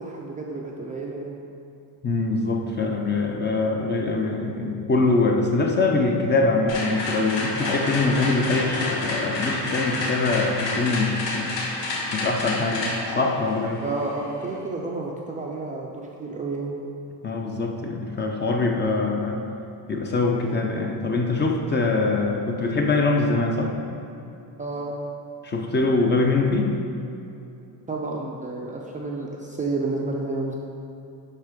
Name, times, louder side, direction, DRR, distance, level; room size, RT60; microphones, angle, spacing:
voice 1, 0.0-1.4 13.8-16.8 23.9-24.0 24.6-25.0 27.9-30.5, right 3 dB, 20° right, -2 dB, 0.4 m, -30 dB
voice 2, 2.0-11.5 12.1-13.8 17.2-19.4 19.9-23.7 25.4-26.7, left 3 dB, 25° left, 2 dB, 0.6 m, -23 dB
sound 1, 6.7-14.6, left 2 dB, 90° left, 1.3 m, -29 dB
10.0 x 3.7 x 5.0 m, 2.8 s
cardioid pair, 150°, 44 cm